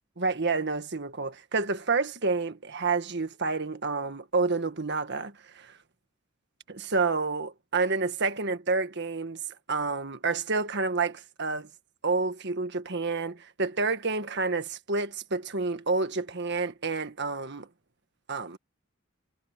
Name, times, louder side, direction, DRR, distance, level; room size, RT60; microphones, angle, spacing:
voice 1, 0.2-5.7 6.7-9.4 9.7-11.7 12.0-17.7 18.3-18.6, right 4 dB, 55° right, 1.6 m, -29 dB
head